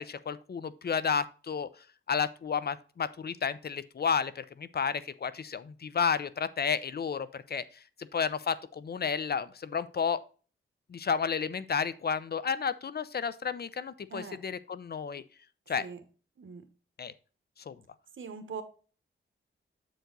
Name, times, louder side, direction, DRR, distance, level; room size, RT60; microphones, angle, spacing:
voice 1, 0.0-1.7 2.1-7.6 8.1-10.2 10.9-15.2 15.7-15.9 17.0-17.1 17.7-17.8, left 6 dB, 50° left, 0.6 m, -31 dB
voice 2, 14.1-14.4 15.8-16.0 16.4-16.7 18.2-18.6, right 6 dB, 70° right, 1.2 m, -41 dB
7.9 x 4.7 x 3.9 m
cardioid pair, 80°, 21 cm